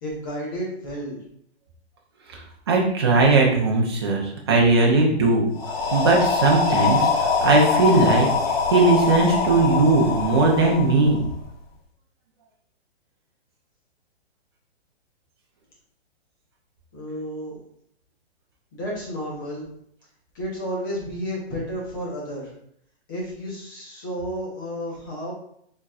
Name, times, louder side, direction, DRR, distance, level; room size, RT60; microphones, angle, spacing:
voice 1, 0.0-1.2 16.9-17.6 18.7-19.7 20.3-22.5 23.1-25.3, equal, 20° left, -4 dB, 1.0 m, -31 dB
voice 2, 2.7-5.5 5.9-11.2, right 3 dB, 25° right, -2 dB, 0.7 m, -19 dB
sound 1, 5.6-11.5, left 5 dB, 65° left, 1.3 m, -23 dB
4.5 x 4.2 x 2.4 m, 0.69 s
hypercardioid pair, 175°, 32 cm